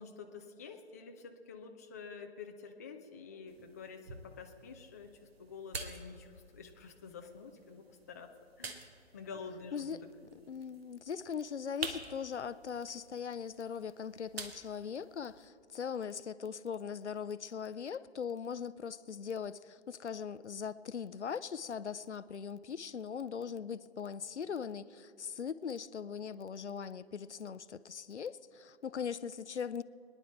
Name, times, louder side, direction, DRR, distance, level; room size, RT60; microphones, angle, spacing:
voice 1, 0.0-5.1 5.4-8.3 8.6-8.9 9.1-10.1, left 5 dB, 15° left, 3 dB, 0.4 m, -48 dB
sound 1, 3.5-15.5, right 3 dB, 60° right, 1.5 m, -49 dB
voice 2, 10.5-29.8, left 7 dB, 80° left, 15 dB, 0.6 m, -40 dB
23.5 x 10.0 x 4.4 m, 2.5 s
figure-of-eight pair, 135°, 34 cm